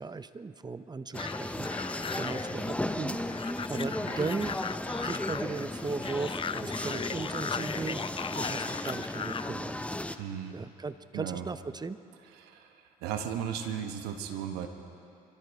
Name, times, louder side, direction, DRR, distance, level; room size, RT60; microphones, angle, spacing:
voice 1, 0.0-4.6 5.0-8.0 8.3-9.7 10.5-12.0, right 4 dB, 25° right, 13 dB, 0.8 m, -37 dB
sound 1, 1.1-9.5, left 6 dB, 35° left, 0.5 m, -38 dB
sound 2, 1.1-10.2, left 1 dB, 10° left, 0.9 m, -35 dB
voice 2, 10.2-10.5 11.1-11.4 12.4-12.7 13.0-14.7, right 8 dB, 80° right, 6 dB, 1.3 m, -35 dB
26.0 x 14.0 x 3.6 m, 2.7 s
hypercardioid pair, 55°, 16 cm